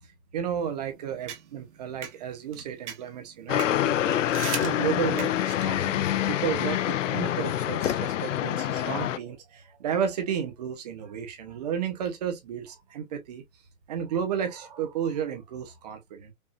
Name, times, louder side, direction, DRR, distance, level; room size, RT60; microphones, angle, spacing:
voice 1, 0.3-4.2 4.6-13.4 13.9-16.3, right 8 dB, 30° right, 1.0 m, -32 dB
sound 1, 0.6-5.6, right 8 dB, 55° right, 1.3 m, -40 dB
sound 2, 3.5-9.2, left 11 dB, 60° left, 0.5 m, -26 dB
5.4 x 2.5 x 2.6 m
hypercardioid pair, 175°, 42 cm